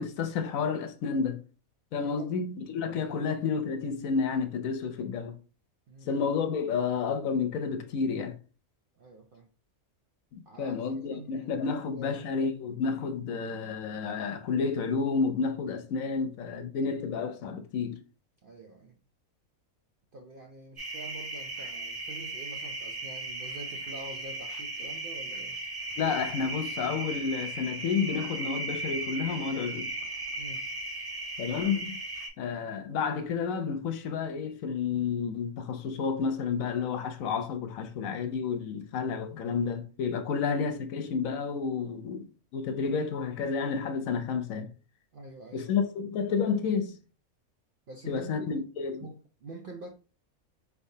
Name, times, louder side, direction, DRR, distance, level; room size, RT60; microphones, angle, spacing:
voice 1, 0.0-1.4 1.9-5.4 6.1-8.4 10.3-18.0 26.0-29.9 31.4-31.9 32.4-42.3 42.5-44.7 45.5-47.0 48.1-49.1, left 5 dB, 70° left, 1.0 m, -30 dB
voice 2, 9.0-9.5 10.5-12.2 18.4-19.0 20.1-25.6 30.4-30.6 40.3-40.5 45.1-45.7 47.9-48.5 49.0-49.9, right 2 dB, 60° right, 0.6 m, -46 dB
sound 1, 20.8-32.3, right 2 dB, 15° right, 1.5 m, -37 dB
4.6 x 3.4 x 2.7 m
omnidirectional pair, 1.5 m